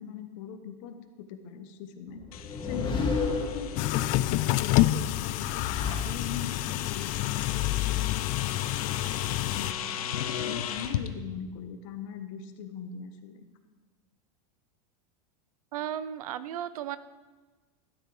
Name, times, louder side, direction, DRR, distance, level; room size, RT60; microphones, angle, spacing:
voice 1, 0.0-2.3 2.6-8.4 9.5-13.4, left 7 dB, 65° left, 7 dB, 1.4 m, -41 dB
sound 1, 2.2-4.2 5.2-6.7, left 4 dB, 25° left, 1.9 m, -32 dB
sound 2, 2.3-11.1, left 9 dB, 90° left, 0.9 m, -37 dB
sound 3, 3.8-9.7, left 16 dB, 50° left, 0.4 m, -28 dB
voice 2, 15.7-17.0, right 10 dB, 85° right, 15 dB, 0.7 m, -34 dB
13.0 x 9.6 x 4.9 m, 1.3 s
supercardioid pair, 125°, 18 cm